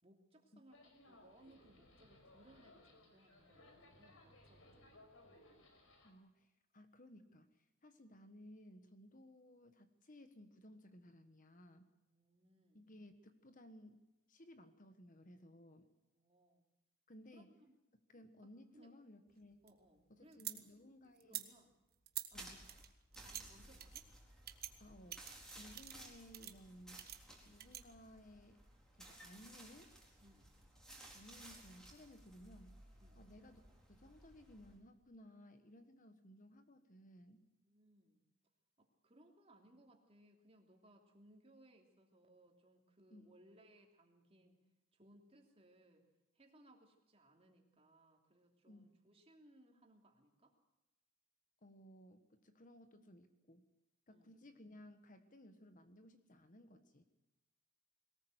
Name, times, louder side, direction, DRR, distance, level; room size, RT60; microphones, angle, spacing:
voice 1, 0.0-5.3 12.1-12.8 16.0-16.6 17.3-17.7 18.7-18.9 19.6-20.6 21.0-21.7 22.3-22.8 23.1-24.1 30.2-30.5 33.0-33.2 37.6-38.2 38.8-44.6 44.9-46.0 46.3-50.6 54.1-54.4, right 1 dB, 30° right, 2 dB, 3.1 m, -66 dB
sound 1, 0.7-6.1, left 1 dB, 70° left, 4.6 m, -63 dB
voice 2, 6.0-11.9 12.7-14.0 14.3-15.9 17.1-17.5 18.1-19.6 20.1-21.4 22.3-22.6 24.8-27.1 27.4-28.6 29.0-29.9 31.1-32.8 33.2-33.6 33.9-37.5 43.1-43.3 48.7-48.9 51.6-53.7 54.1-57.0, left 1 dB, 40° left, 8 dB, 1.4 m, -59 dB
sound 2, 19.3-20.6 21.2-21.5 22.1-22.3 22.6-23.4 23.8-24.0 24.5-24.7 25.1-26.1 26.3-26.5 27.0-27.8, right 13 dB, 45° right, 1.3 m, -47 dB
sound 3, 22.3-34.8, right 1 dB, 5° left, 4.3 m, -58 dB
22.5 x 18.5 x 8.1 m, 0.95 s
head